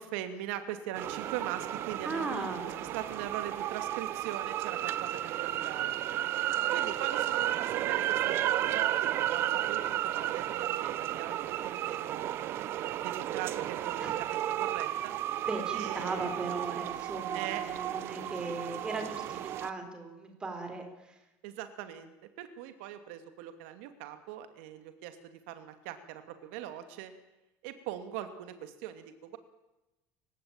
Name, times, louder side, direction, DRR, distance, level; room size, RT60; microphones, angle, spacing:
voice 1, 0.0-5.9 6.7-12.4 13.0-15.1 15.7-16.3 17.3-17.6 21.4-25.2 25.5-27.1 27.6-29.4, right 11 dB, 85° right, 9 dB, 2.7 m, -41 dB
sound 1, 0.9-19.7, right 12 dB, 40° right, 1.0 m, -33 dB
voice 2, 2.0-2.9 6.6-6.7 14.0-14.2 15.5-21.2, right 3 dB, 15° right, 6 dB, 4.2 m, -38 dB
29.0 x 17.0 x 9.0 m, 1.0 s
cardioid pair, 170°, 6 cm